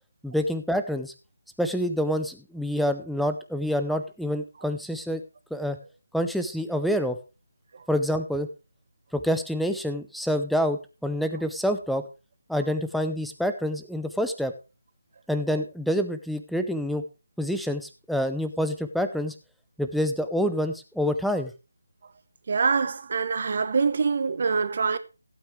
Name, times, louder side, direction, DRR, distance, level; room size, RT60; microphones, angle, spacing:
voice 1, 0.2-1.1 1.6-5.2 5.5-5.8 6.1-7.2 7.9-8.5 9.1-12.0 12.5-14.5 15.3-17.0 17.4-19.3 19.8-21.5, equal, ahead, 0.6 m, -27 dB
voice 2, 22.5-25.0, right 5 dB, 45° right, 1.1 m, -24 dB
15.5 x 9.0 x 3.2 m
figure-of-eight pair, 155°, 0 cm